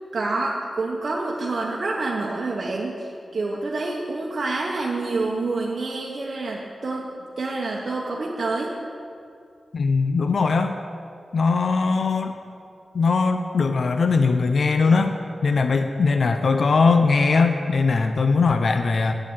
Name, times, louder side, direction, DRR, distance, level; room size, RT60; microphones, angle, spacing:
voice 1, 0.1-8.7, right 3 dB, 55° right, -3 dB, 1.1 m, -27 dB
voice 2, 9.7-10.7 11.3-12.3 12.9-15.1 15.4-19.1, left 4 dB, 65° left, 7 dB, 0.5 m, -20 dB
8.9 x 7.4 x 8.2 m, 2.4 s
wide cardioid pair, 90°, 0 cm